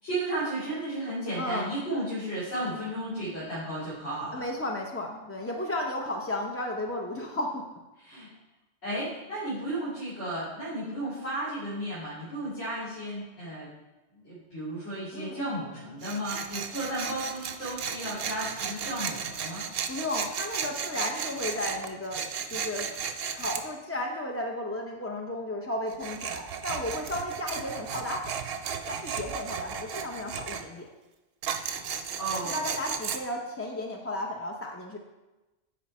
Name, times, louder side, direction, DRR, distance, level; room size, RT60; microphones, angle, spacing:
voice 1, 0.0-4.5 8.0-8.3 8.8-13.7 14.1-19.7 32.2-32.6, right 1 dB, 75° left, -12 dB, 3.3 m, -34 dB
voice 2, 1.4-1.7 4.3-7.6 8.1-8.3 15.1-15.6 19.9-22.9 23.3-28.3 28.9-30.9 32.4-35.0, left 1 dB, 25° left, 0 dB, 0.3 m, -34 dB
Tools, 16.0-23.6 25.9-30.6 31.4-33.2, right 7 dB, 60° right, 0.7 m, -35 dB
8.4 x 4.9 x 4.2 m, 1.1 s
omnidirectional pair, 1.2 m